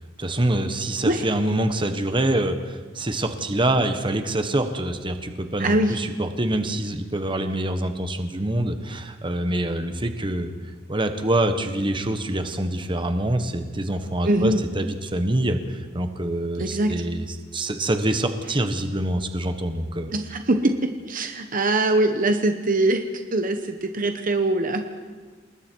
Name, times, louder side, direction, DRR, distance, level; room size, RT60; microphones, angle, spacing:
voice 1, 0.2-10.5 10.9-17.2 17.5-20.1, right 1 dB, 25° right, 7 dB, 1.3 m, -25 dB
voice 2, 5.6-6.0 14.3-14.6 16.6-17.0 20.1-24.9, right 2 dB, 45° right, 6 dB, 1.1 m, -23 dB
28.0 x 20.0 x 4.7 m, 1.4 s
head